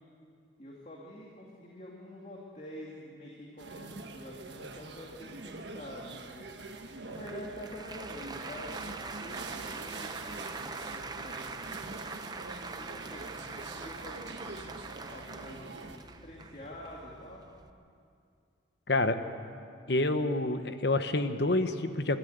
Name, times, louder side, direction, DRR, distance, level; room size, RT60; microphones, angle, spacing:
voice 1, 0.6-6.6 7.1-11.8 12.7-14.6 15.1-17.4, equal, 35° left, -3 dB, 2.4 m, -47 dB
sound 1, 3.6-16.0, right 3 dB, 65° right, 1.4 m, -45 dB
Applause, 7.1-17.7, right 3 dB, 20° right, 0.7 m, -43 dB
voice 2, 18.9-19.2 19.9-22.2, left 2 dB, 60° left, 9 dB, 1.1 m, -28 dB
24.5 x 14.0 x 8.1 m, 2.3 s
head